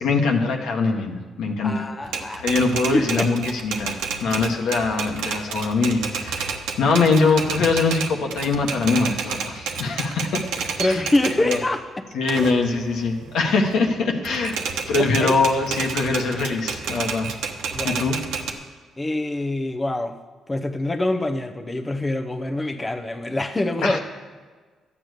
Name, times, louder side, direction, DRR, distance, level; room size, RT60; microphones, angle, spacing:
voice 1, 0.0-1.9 2.4-10.4 10.8-11.0 11.4-11.6 12.1-14.6 14.9-17.3 17.8-18.2 23.8-24.0, left 4 dB, 80° left, 2 dB, 1.5 m, -22 dB
voice 2, 1.6-2.5 2.9-3.3 10.8-12.1 12.4-12.5 15.0-15.3 17.7-18.0 19.0-20.2 20.5-24.0, left 1 dB, 20° left, 5 dB, 0.7 m, -25 dB
Typewriter, 2.0-11.7 12.1-13.9 14.2-18.5, right 6 dB, 90° right, 1.1 m, -30 dB
12.5 x 8.9 x 6.6 m, 1.4 s
cardioid pair, 90°, 0 cm